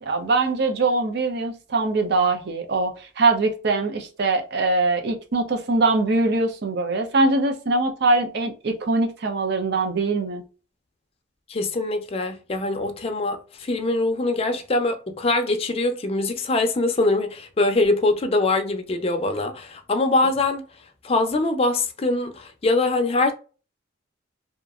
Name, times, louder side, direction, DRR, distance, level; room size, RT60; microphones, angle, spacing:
voice 1, 0.0-10.4, right 3 dB, 55° right, 0.6 m, -22 dB
voice 2, 11.5-20.6 21.0-23.3, left 2 dB, 30° left, 0.4 m, -23 dB
2.8 x 2.4 x 2.3 m
head